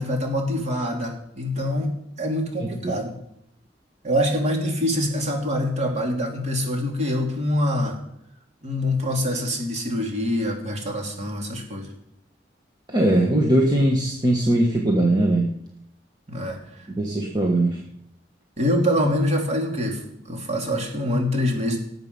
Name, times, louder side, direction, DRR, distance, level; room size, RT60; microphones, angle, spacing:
voice 1, 0.0-1.9 2.2-3.1 4.0-8.0 8.6-11.9 16.3-16.9 18.6-20.0 20.3-21.8, left 1 dB, 40° right, 1 dB, 3.0 m, -25 dB
voice 2, 2.6-3.0 12.9-15.5 16.9-17.8, right 1 dB, 25° right, 0 dB, 1.5 m, -20 dB
18.0 x 8.0 x 5.5 m, 0.75 s
head